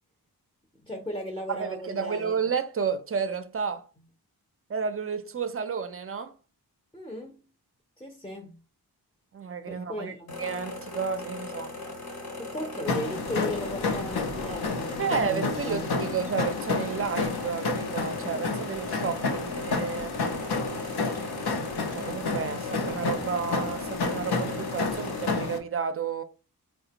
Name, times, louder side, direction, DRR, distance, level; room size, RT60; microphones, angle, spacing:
voice 1, 0.8-2.4 6.9-7.5 8.0-8.6 9.7-10.4 12.4-15.9, equal, 15° left, 0.5 m, -36 dB
voice 2, 1.5-3.9 4.7-6.3 9.3-11.8 15.0-20.2 21.9-26.2, right 6 dB, 35° right, 0.4 m, -31 dB
sound 1, 10.3-25.3, left 2 dB, 65° left, 0.9 m, -39 dB
sound 2, 12.9-25.6, left 4 dB, 85° left, 0.6 m, -30 dB
4.0 x 2.1 x 2.8 m
wide cardioid pair, 110°, 38 cm